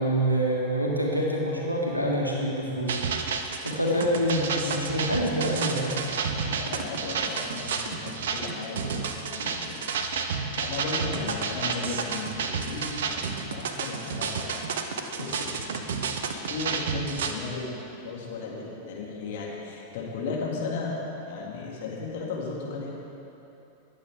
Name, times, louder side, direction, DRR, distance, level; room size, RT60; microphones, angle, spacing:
voice 1, 0.0-3.0 3.6-6.0, equal, 90° right, -2 dB, 1.8 m, -26 dB
sound 1, 2.9-17.3, right 5 dB, 60° right, 0.8 m, -31 dB
voice 2, 6.3-10.2 10.6-14.6 15.0-21.0 21.3-22.9, left 4 dB, 55° left, -3 dB, 2.4 m, -36 dB
20.5 x 8.2 x 3.6 m, 3.0 s
figure-of-eight pair, 90°, 0 cm